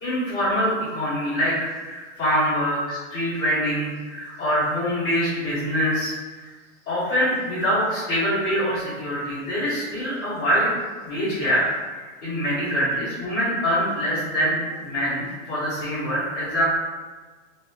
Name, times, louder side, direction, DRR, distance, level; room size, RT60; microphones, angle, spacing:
voice 1, 0.0-6.5 6.9-10.7 11.0-11.6 11.9-16.6, equal, 10° left, -14 dB, 0.5 m, -24 dB
2.3 x 2.0 x 3.0 m, 1.4 s
supercardioid pair, 175°, 41 cm